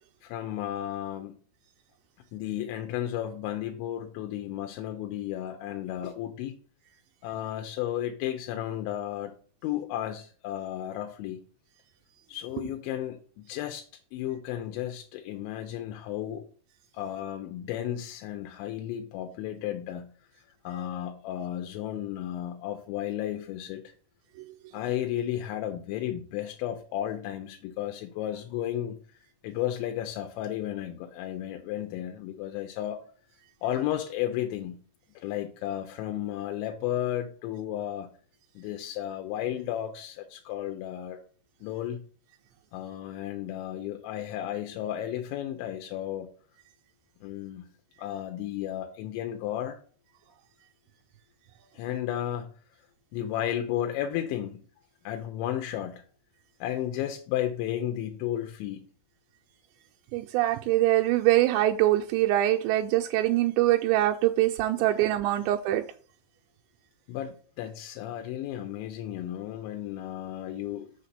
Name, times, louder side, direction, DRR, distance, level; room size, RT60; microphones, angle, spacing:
voice 1, 0.2-1.4 2.3-6.6 7.2-9.3 9.6-11.4 12.3-16.5 16.9-20.1 20.6-23.8 24.7-29.0 29.4-33.0 33.6-34.8 35.2-38.1 38.6-41.2 41.6-42.0 42.7-46.3 47.2-47.7 48.0-49.8 51.8-52.5 53.1-54.6 55.0-56.0 56.6-58.9 67.1-70.9, left 11 dB, 90° left, 3.1 m, -33 dB
voice 2, 60.1-65.8, right 15 dB, 85° right, 2.6 m, -23 dB
6.6 x 4.2 x 6.6 m
omnidirectional pair, 5.2 m